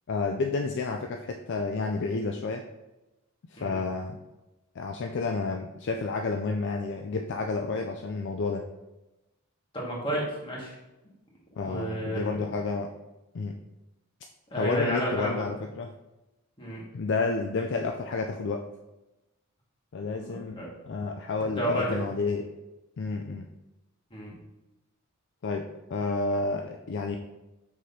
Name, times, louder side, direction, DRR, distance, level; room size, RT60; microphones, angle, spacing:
voice 1, 0.1-2.6 3.5-4.2 4.8-8.6 11.6-12.9 13.3-13.6 14.5-15.9 16.9-18.6 19.9-22.5 23.0-23.5 25.4-25.6 25.9-27.2, left 3 dB, 55° left, 4 dB, 0.4 m, -30 dB
voice 2, 9.7-10.7 11.6-12.4 14.5-15.5 16.6-16.8 20.2-20.7 21.6-22.0 24.1-24.3, right 1 dB, 25° left, -4 dB, 1.9 m, -31 dB
6.1 x 5.9 x 2.8 m, 0.99 s
head